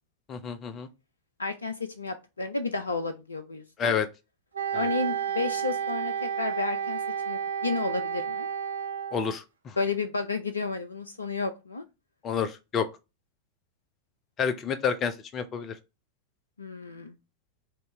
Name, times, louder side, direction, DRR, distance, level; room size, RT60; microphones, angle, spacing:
voice 1, 0.3-0.9 3.8-4.1 9.1-9.8 12.2-12.9 14.4-15.7, left 7 dB, 30° left, 0.6 m, -29 dB
voice 2, 1.4-3.9 4.7-7.0 7.3-8.5 9.8-11.8 16.6-17.2, left 3 dB, 75° left, 0.4 m, -32 dB
Wind instrument woodwind instrument, 4.5-9.4, right 8 dB, 75° right, 0.6 m, -31 dB
4.4 x 2.6 x 3.0 m
figure-of-eight pair, 90°, 0 cm